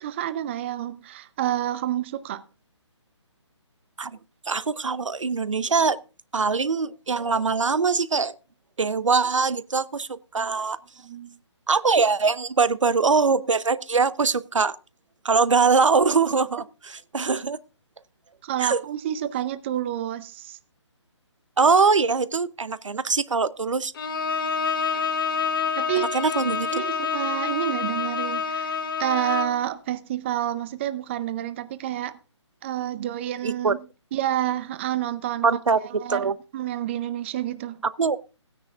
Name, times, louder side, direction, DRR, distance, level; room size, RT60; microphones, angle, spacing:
voice 1, 0.0-2.4 11.0-11.4 18.4-20.6 25.8-26.1 26.7-32.1 32.6-33.8 34.1-35.5 35.8-37.8, right 12 dB, 25° right, 0.6 m, -29 dB
voice 2, 4.5-6.0 6.3-8.3 8.8-10.8 11.7-14.8 15.2-17.6 18.6-18.8 21.6-23.9 26.1-26.7 33.4-33.7 35.4-35.8 36.1-36.3 38.0-38.2, right 4 dB, 85° right, 0.7 m, -22 dB
Bowed string instrument, 24.0-29.6, left 6 dB, 45° left, 1.0 m, -27 dB
16.5 x 9.8 x 2.4 m
figure-of-eight pair, 150°, 16 cm